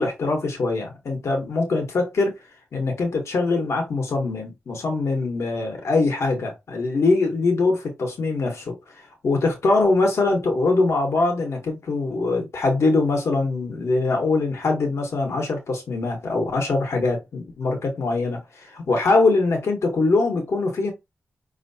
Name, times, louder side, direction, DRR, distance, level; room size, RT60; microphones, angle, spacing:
voice 1, 0.0-2.3 2.7-20.9, left 3 dB, 75° left, 1.2 m, -23 dB
5.4 x 3.0 x 2.7 m
wide cardioid pair, 120°, 5 cm